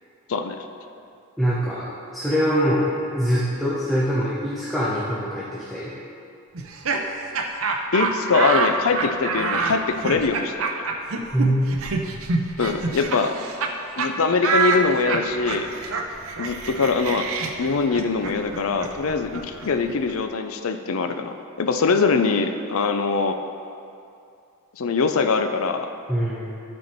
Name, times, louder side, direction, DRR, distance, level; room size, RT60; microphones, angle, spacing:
voice 1, 0.3-0.6 7.9-10.8 12.6-13.4 14.0-15.7 16.4-17.3 17.6-23.4 24.8-25.9, left 4 dB, 70° left, 7 dB, 0.5 m, -23 dB
voice 2, 1.4-5.9 11.3-11.7 26.1-26.5, equal, ahead, -8 dB, 0.9 m, -23 dB
Laughter, 6.5-13.7 14.0-14.1 14.4-20.1, right 4 dB, 70° right, 0.7 m, -27 dB
12.0 x 4.5 x 4.4 m, 2.5 s
head